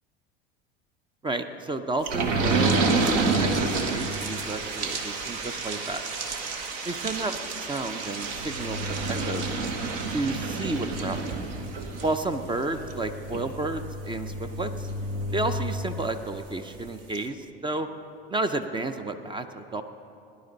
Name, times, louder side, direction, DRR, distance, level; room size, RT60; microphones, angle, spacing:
voice 1, 1.2-6.0 6.8-7.3 7.6-9.5 10.1-11.4 12.0-14.9 15.3-17.9 18.3-19.8, right 2 dB, 15° right, 9 dB, 0.6 m, -31 dB
sound 1, 2.0-16.4 16.8-16.9 17.1-17.2, right 3 dB, 55° right, 1.3 m, -29 dB
17.5 x 10.5 x 4.0 m, 2.6 s
hypercardioid pair, 80°, 31 cm